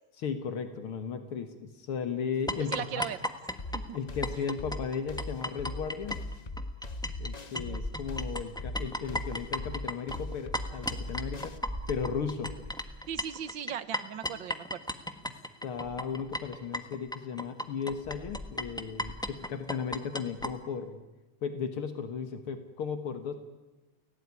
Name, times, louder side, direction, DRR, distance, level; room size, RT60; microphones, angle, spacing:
voice 1, 0.2-3.0 3.9-6.2 7.2-11.6 11.9-12.5 15.6-21.0 21.4-23.3, left 6 dB, 80° left, 8 dB, 2.4 m, -35 dB
sound 1, 2.5-7.3 7.5-20.5, left 1 dB, ahead, 1.1 m, -36 dB
voice 2, 2.7-3.2 3.7-4.0 7.7-7.8 13.1-14.8, right 9 dB, 65° right, 15 dB, 1.7 m, -37 dB
sound 2, 3.6-11.6, left 2 dB, 35° left, 0.6 m, -39 dB
29.5 x 17.5 x 9.7 m, 1.1 s
omnidirectional pair, 2.4 m